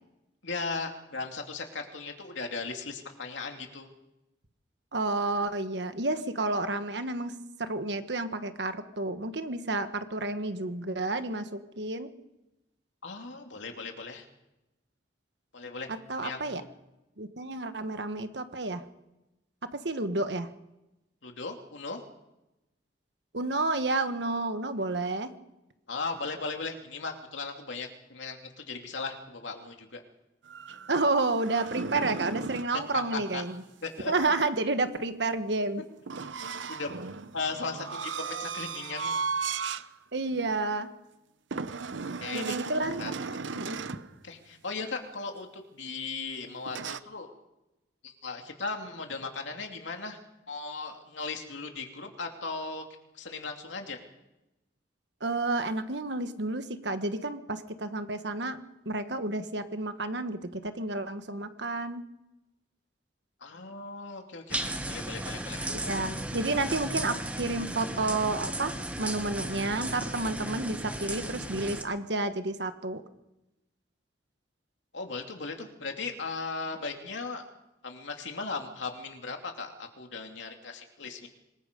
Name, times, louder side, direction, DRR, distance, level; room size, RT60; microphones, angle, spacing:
voice 1, 0.4-3.9 13.0-14.3 15.5-15.9 16.2-16.7 21.2-22.0 25.9-30.0 31.9-32.1 33.1-33.4 33.8-34.1 35.8-35.9 36.7-37.0 37.3-39.2 42.2-42.6 43.0-43.1 44.2-47.3 48.0-50.2 50.5-52.9 53.1-54.0 63.4-65.7 74.9-77.4 77.8-81.3, left 4 dB, 85° left, 3 dB, 2.7 m, -37 dB
voice 2, 4.9-7.3 7.6-12.1 16.1-16.6 17.2-18.8 19.7-20.5 23.3-25.3 30.9-33.6 34.1-35.8 40.1-40.9 42.3-43.0 43.5-43.8 55.2-58.6 58.8-62.0 65.7-68.7 69.0-73.0, right 2 dB, 65° right, 9 dB, 1.4 m, -30 dB
sound 1, 30.5-32.8 36.1-39.9 40.3-40.5 41.5-44.1 46.7-47.0, right 5 dB, 85° right, 0.8 m, -35 dB
sound 2, 64.5-71.8, right 1 dB, 10° right, 1.3 m, -35 dB
26.0 x 20.0 x 5.3 m, 0.95 s
head